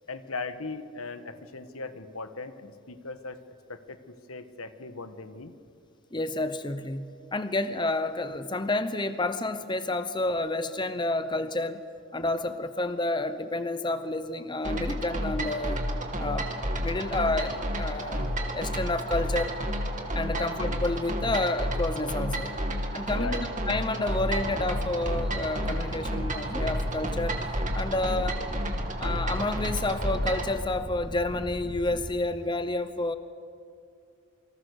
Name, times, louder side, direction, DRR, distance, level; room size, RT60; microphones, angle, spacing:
voice 1, 0.1-3.4 3.7-5.5 20.3-20.5 23.2-23.5, left 3 dB, 85° left, 9 dB, 1.5 m, -39 dB
voice 2, 6.1-11.8 12.1-15.8 16.2-16.5 16.8-19.5 20.1-22.5 22.9-27.4 27.7-28.4 29.0-33.2, left 2 dB, 20° left, 10 dB, 0.9 m, -30 dB
sound 1, 14.6-30.5, equal, 35° right, 2.5 m, -31 dB
sound 2, 17.2-22.6, left 2 dB, 60° left, 7.5 m, -51 dB
sound 3, 24.3-32.1, equal, 15° right, 1.5 m, -39 dB
28.0 x 25.0 x 6.6 m, 2.4 s
head